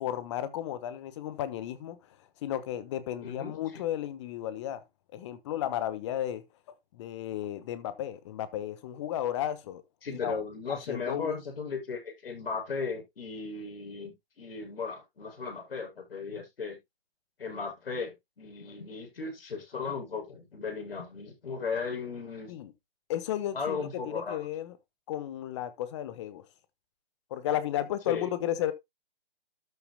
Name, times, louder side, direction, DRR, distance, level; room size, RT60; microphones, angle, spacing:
voice 1, 0.0-2.0 2.4-4.8 5.1-9.8 10.1-10.4 10.7-11.4 22.5-22.7 23.1-23.8 24.0-24.8 25.1-26.4 27.3-28.7, left 11 dB, 30° left, 1.2 m, -33 dB
voice 2, 3.2-3.8 10.0-16.8 17.4-22.5 23.5-24.4 28.1-28.3, left 5 dB, 65° left, 6.9 m, -36 dB
13.0 x 7.1 x 2.2 m
hypercardioid pair, 150°, 31 cm